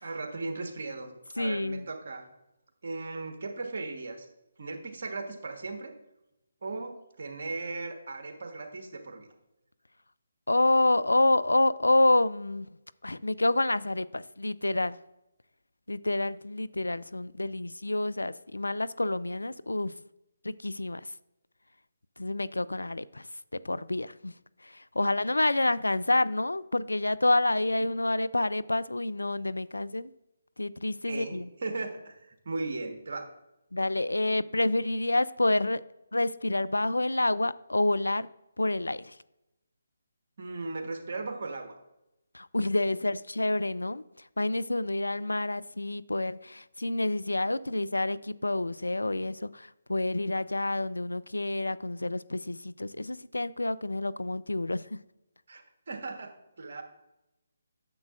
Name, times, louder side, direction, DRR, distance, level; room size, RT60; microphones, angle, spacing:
voice 1, 0.0-2.2 2.8-4.3 4.6-5.9 6.6-9.3 25.0-25.1 31.1-33.3 40.4-41.8 55.5-56.3 56.6-56.8, right 3 dB, 55° right, 5 dB, 1.3 m, -37 dB
voice 2, 1.4-1.9 10.5-12.7 13.0-15.0 15.9-19.9 20.4-21.0 22.2-23.3 23.6-24.4 24.6-30.1 30.6-31.5 33.7-35.8 36.1-38.3 38.6-39.2 42.3-44.0 44.4-54.9, left 2 dB, 85° left, 17 dB, 0.3 m, -28 dB
9.7 x 7.3 x 2.5 m, 0.91 s
figure-of-eight pair, 145°, 0 cm